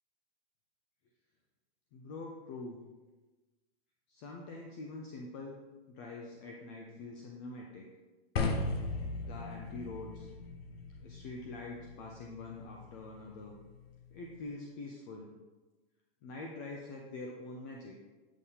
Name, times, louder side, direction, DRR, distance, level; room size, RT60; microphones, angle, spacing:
voice 1, 1.9-2.8 4.1-5.6 5.9-7.9 9.3-10.3 11.0-13.6 14.1-15.3 16.2-18.0, left 3 dB, 20° left, 0 dB, 0.3 m, -45 dB
sound 1, 8.4-14.5, left 3 dB, 75° left, 0.9 m, -39 dB
8.1 x 5.4 x 2.8 m, 1.2 s
hypercardioid pair, 145°, 31 cm